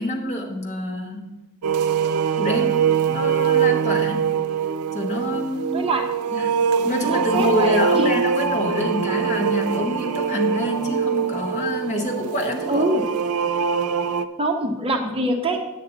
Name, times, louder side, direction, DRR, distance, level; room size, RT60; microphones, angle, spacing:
voice 1, 0.0-1.3 2.4-4.3 4.9-5.9 6.3-6.6 6.8-12.9, left 1 dB, 30° left, 0 dB, 1.3 m, -27 dB
sound 1, 1.6-14.3, right 6 dB, 85° right, 0.5 m, -23 dB
voice 2, 5.7-6.1 7.0-8.1 12.7-13.0 14.4-15.6, right 1 dB, 25° right, 3 dB, 0.7 m, -24 dB
9.9 x 8.6 x 3.9 m, 1.1 s
head